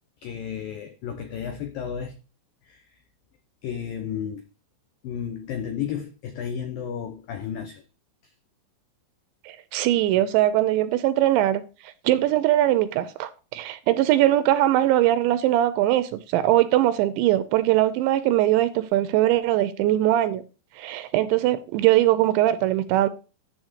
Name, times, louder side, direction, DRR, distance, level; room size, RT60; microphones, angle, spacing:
voice 1, 0.2-2.2 2.6-3.0 3.6-4.4 5.0-7.8 8.2-8.3, left 8 dB, 85° left, 2.0 m, -33 dB
voice 2, 9.5-20.4 20.8-23.1, right 14 dB, 80° right, 2.7 m, -21 dB
11.5 x 4.3 x 8.0 m
omnidirectional pair, 5.6 m